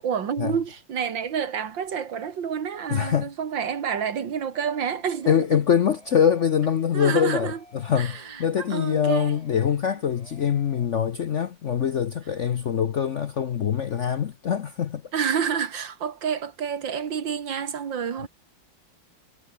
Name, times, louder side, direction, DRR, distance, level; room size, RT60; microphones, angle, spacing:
voice 1, 0.0-5.6 6.9-7.6 8.0-9.3 15.1-18.3, right 7 dB, 75° right, 2.4 m, -29 dB
voice 2, 2.9-3.3 5.3-15.0, left 8 dB, 55° left, 0.8 m, -24 dB
sound 1, 4.5-10.9, left 1 dB, 15° left, 5.6 m, -52 dB
omnidirectional pair, 2.1 m